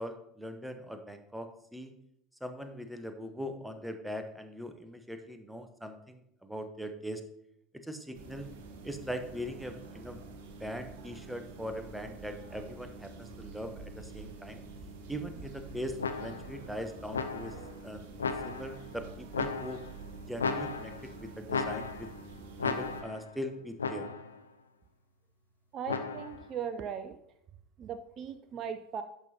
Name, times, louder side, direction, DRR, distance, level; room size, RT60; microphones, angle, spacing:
voice 1, 0.0-1.9 2.4-7.2 7.8-8.5 8.8-10.2 10.6-14.6 15.1-17.6 17.8-18.0 18.4-19.8 20.3-22.1 22.6-24.1, equal, 5° right, 7 dB, 0.8 m, -41 dB
sound 1, 8.1-23.0, right 3 dB, 60° right, 0.9 m, -47 dB
sound 2, 16.0-16.6 17.1-17.7 18.2-18.9 19.3-20.0 20.4-21.1 21.5-22.2 22.6-23.3 23.8-24.4 25.9-26.5, left 4 dB, 80° left, 0.4 m, -35 dB
voice 2, 25.7-27.2 27.8-29.0, right 7 dB, 40° right, 9 dB, 0.4 m, -38 dB
10.5 x 5.7 x 2.8 m, 0.77 s
figure-of-eight pair, 75°, 0 cm